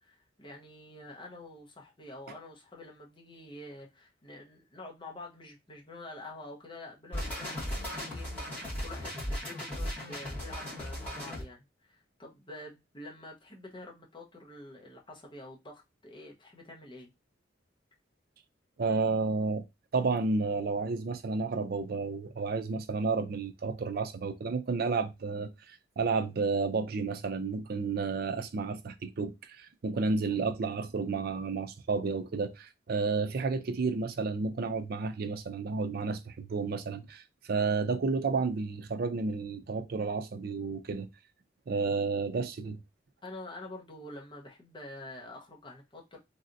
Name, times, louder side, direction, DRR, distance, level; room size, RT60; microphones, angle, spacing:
voice 1, 0.0-17.1 43.2-46.2, left 2 dB, 25° left, 0.9 m, -47 dB
sound 1, 7.1-11.4, equal, 5° left, 1.7 m, -37 dB
voice 2, 18.8-19.6 19.9-41.1 41.7-42.8, right 4 dB, 55° right, 0.4 m, -31 dB
3.2 x 2.8 x 2.5 m
head